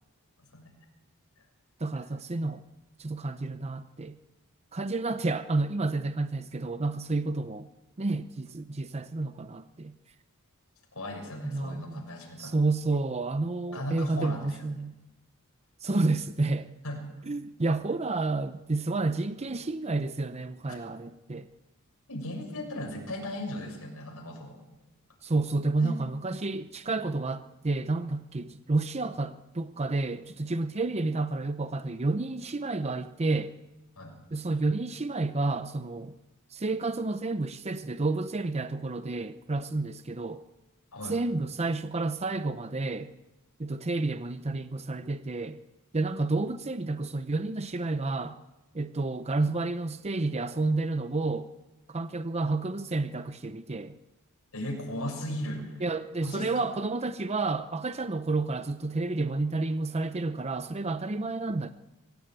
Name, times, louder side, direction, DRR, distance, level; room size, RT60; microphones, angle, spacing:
voice 1, 1.8-2.6 3.0-4.2 4.7-7.7 8.0-9.9 11.5-12.0 12.4-14.9 15.8-16.7 17.3-21.5 25.2-33.5 34.3-36.2 36.5-40.4 41.1-43.1 43.6-45.6 45.9-48.4 48.7-51.5 51.9-53.9 55.8-61.7, right 3 dB, 30° right, 0.7 m, -30 dB
voice 2, 10.9-12.6 13.7-14.7 16.8-17.2 20.7-20.8 22.1-24.6 25.8-26.0 34.0-34.2 40.9-41.2 54.5-55.8 56.2-56.6, left 1 dB, 70° left, 6.8 m, -37 dB
24.0 x 16.5 x 8.9 m
head